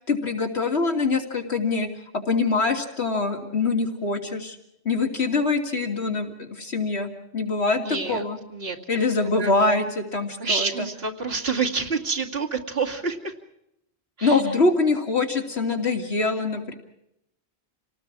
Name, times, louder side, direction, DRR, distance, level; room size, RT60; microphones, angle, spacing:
voice 1, 0.1-1.9 2.1-4.6 4.8-8.4 8.9-10.9 14.2-16.7, left 3 dB, 85° left, 2 dB, 3.1 m, -24 dB
voice 2, 7.8-8.8 9.4-9.5 10.4-13.3 14.2-14.4, right 4 dB, 70° right, 1 dB, 2.6 m, -28 dB
28.5 x 19.0 x 6.1 m, 0.81 s
omnidirectional pair, 1.1 m